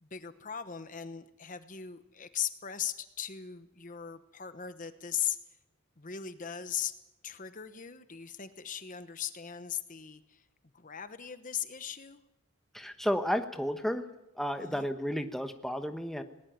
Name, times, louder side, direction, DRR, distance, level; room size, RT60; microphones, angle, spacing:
voice 1, 0.0-5.4 6.0-7.0 7.2-10.4 10.7-12.2 14.6-14.9, left 9 dB, 35° left, 11 dB, 1.1 m, -38 dB
voice 2, 12.7-14.0 14.4-16.2, equal, ahead, 7 dB, 1.1 m, -32 dB
19.5 x 19.0 x 9.3 m, 0.89 s
head